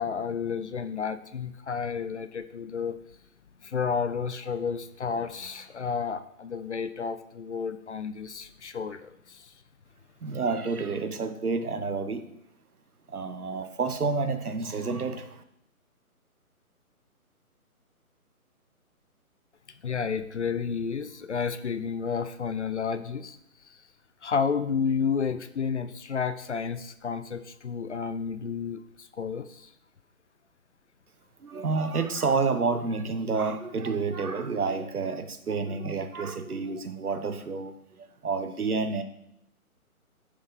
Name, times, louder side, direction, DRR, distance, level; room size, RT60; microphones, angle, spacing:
voice 1, 0.0-3.0 3.6-9.5 19.7-23.4 23.7-23.8 24.2-29.7, left 6 dB, 50° left, 0.5 m, -31 dB
voice 2, 10.2-12.2 13.1-15.4 31.4-39.0, right 4 dB, 75° right, 1.0 m, -29 dB
6.4 x 5.9 x 3.7 m
figure-of-eight pair, 150°, 44 cm